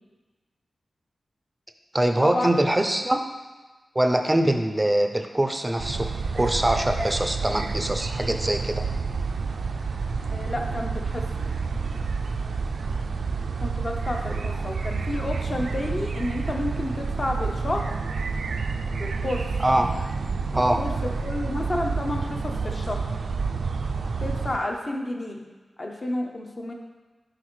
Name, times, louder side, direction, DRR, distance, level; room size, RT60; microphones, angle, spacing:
voice 1, 1.9-3.2 4.0-6.1 6.3-8.8 19.6-19.9 20.5-20.8, right 1 dB, 15° right, 6 dB, 0.4 m, -23 dB
sound 1, 5.8-24.6, right 4 dB, 80° right, 0.3 m, -29 dB
voice 2, 10.3-11.3 13.6-17.8 19.0-19.5 20.5-23.0 24.2-25.4 25.8-26.7, left 1 dB, 35° left, 2 dB, 0.7 m, -30 dB
7.5 x 4.9 x 3.1 m, 1.3 s
wide cardioid pair, 140°, 0 cm